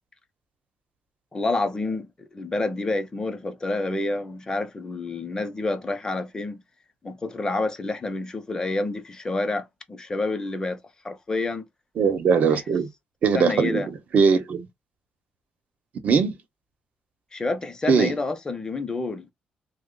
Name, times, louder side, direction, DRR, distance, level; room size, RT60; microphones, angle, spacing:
voice 1, 1.3-2.1 2.3-6.6 7.0-10.8 11.0-11.6 12.5-12.6 13.3-13.9 17.3-19.3, left 2 dB, 25° left, 0.7 m, -28 dB
voice 2, 12.0-12.9 13.2-14.7 16.0-16.4 17.9-18.1, right 6 dB, 65° right, 0.9 m, -21 dB
3.0 x 2.2 x 3.8 m
cardioid pair, 105°, 3 cm